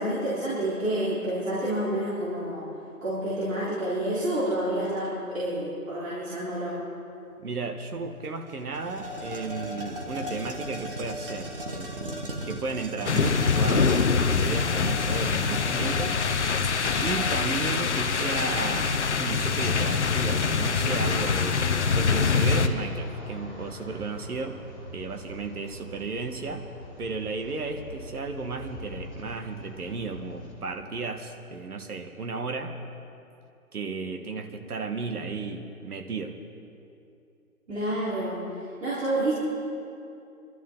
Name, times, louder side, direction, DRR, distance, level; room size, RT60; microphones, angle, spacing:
voice 1, 0.0-2.7 3.0-6.8 37.7-38.4 38.8-39.3, right 1 dB, 60° right, -9 dB, 3.9 m, -28 dB
voice 2, 7.4-12.1 12.4-16.5 17.0-24.6 24.9-26.7 27.0-32.7 33.7-36.3, right 4 dB, 80° right, 6 dB, 1.5 m, -34 dB
sound 1, 7.8-7.9 8.2-18.9, equal, 40° right, 1.1 m, -38 dB
sound 2, 13.1-22.7, left 5 dB, 50° left, 0.7 m, -24 dB
sound 3, 20.9-30.5, left 1 dB, 15° right, 4.0 m, -44 dB
24.0 x 12.5 x 3.7 m, 2.7 s
hypercardioid pair, 175°, 44 cm